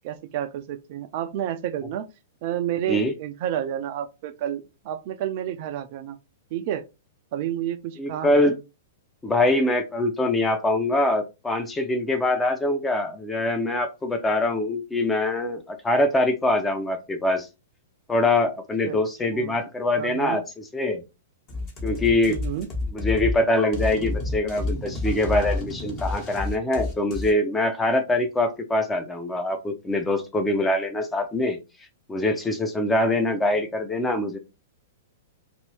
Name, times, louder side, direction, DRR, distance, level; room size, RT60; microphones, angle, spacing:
voice 1, 0.0-2.0 2.4-6.2 6.5-6.8 7.3-8.5 9.3-9.4 18.8-19.0 19.3-19.6 20.0-20.4 22.3-22.7, right 11 dB, 45° right, 0.3 m, -30 dB
voice 2, 8.0-8.5 9.2-17.5 18.1-21.0 21.8-22.4 22.9-31.6 32.1-34.4, left 1 dB, 10° left, 0.6 m, -24 dB
sound 1, 21.5-27.3, left 2 dB, 30° left, 1.1 m, -29 dB
2.6 x 2.6 x 3.3 m
figure-of-eight pair, 105°, 0 cm